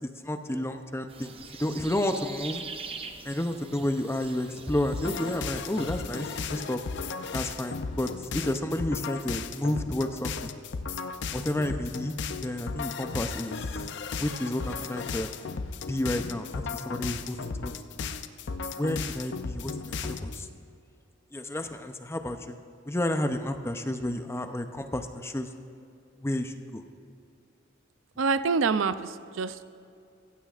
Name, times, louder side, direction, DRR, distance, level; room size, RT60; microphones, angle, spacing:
voice 1, 0.0-1.3 1.6-2.6 3.2-6.8 7.3-10.5 11.3-12.2 12.4-13.6 14.2-15.3 15.9-17.7 18.8-20.5 21.3-22.6 22.9-25.5 26.2-26.8, left 1 dB, 15° left, 7 dB, 0.6 m, -31 dB
sound 1, 1.1-6.5, right 5 dB, 30° right, 0.7 m, -43 dB
sound 2, 4.9-20.5, left 5 dB, 65° left, 0.5 m, -35 dB
voice 2, 28.2-29.6, right 4 dB, 80° right, 12 dB, 0.5 m, -26 dB
15.0 x 14.5 x 2.5 m, 2.5 s
head